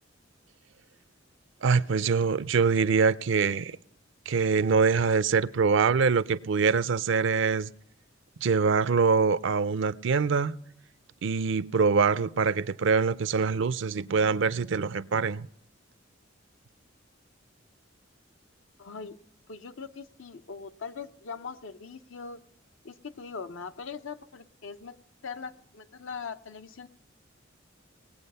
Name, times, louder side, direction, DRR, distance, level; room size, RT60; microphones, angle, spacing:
voice 1, 1.6-3.8 4.3-7.7 8.4-10.6 11.2-15.5, right 5 dB, 70° right, 0.5 m, -24 dB
voice 2, 18.8-19.2 19.5-22.4 22.8-25.0 25.2-26.9, left 5 dB, 80° left, 0.8 m, -41 dB
19.0 x 8.4 x 5.5 m
head